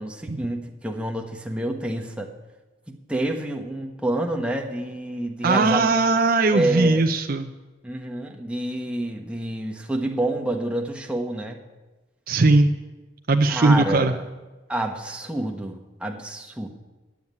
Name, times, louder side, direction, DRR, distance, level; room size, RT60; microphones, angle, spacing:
voice 1, 0.0-2.3 2.9-6.0 6.5-7.1 7.8-11.6 13.5-14.2 14.7-16.7, right 1 dB, 5° right, 3 dB, 1.0 m, -28 dB
voice 2, 5.4-7.5 12.3-12.7 13.3-14.1, right 3 dB, 50° right, 4 dB, 0.6 m, -19 dB
10.5 x 7.2 x 9.5 m, 1.2 s
head